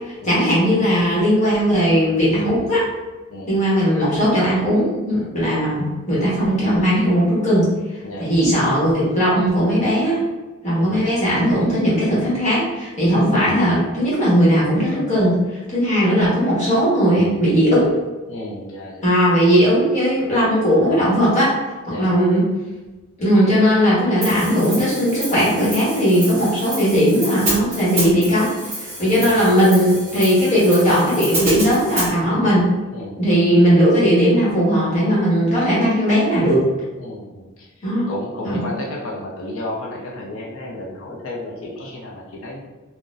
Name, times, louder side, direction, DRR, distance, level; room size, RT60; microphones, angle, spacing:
voice 1, 0.2-2.8 3.5-7.7 8.2-10.2 10.6-15.4 15.7-17.9 19.0-21.5 22.0-22.5 23.2-28.5 28.8-32.7 33.2-36.7 37.8-38.0 38.4-38.6, equal, 30° left, -8 dB, 1.2 m, -17 dB
voice 2, 8.0-8.4 10.7-11.1 18.3-19.1 21.9-22.2 29.2-29.4 32.9-33.2 37.0-37.7 38.1-42.6, left 1 dB, 70° left, -3 dB, 0.7 m, -32 dB
Hi-hat, 24.2-32.1, right 1 dB, 30° right, 1.1 m, -29 dB
3.8 x 2.3 x 2.5 m, 1.2 s
head